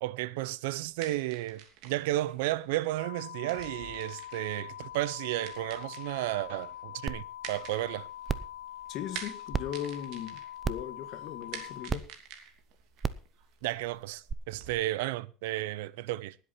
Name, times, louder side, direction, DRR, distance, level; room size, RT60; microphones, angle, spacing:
voice 1, 0.0-8.1 13.6-16.4, right 16 dB, 90° right, 0.6 m, -33 dB
sound 1, 0.9-14.7, right 8 dB, 60° right, 2.8 m, -49 dB
sound 2, 3.0-11.9, left 12 dB, 85° left, 2.7 m, -44 dB
sound 3, 7.1-7.2 7.6-7.7 8.3-8.5 9.5-9.6 10.6-10.9 11.9-12.0 13.0-13.2 14.3-14.4, right 6 dB, 20° right, 0.6 m, -31 dB
voice 2, 8.9-12.1, left 10 dB, 45° left, 1.7 m, -38 dB
19.0 x 8.1 x 4.3 m
cardioid pair, 155°, 0 cm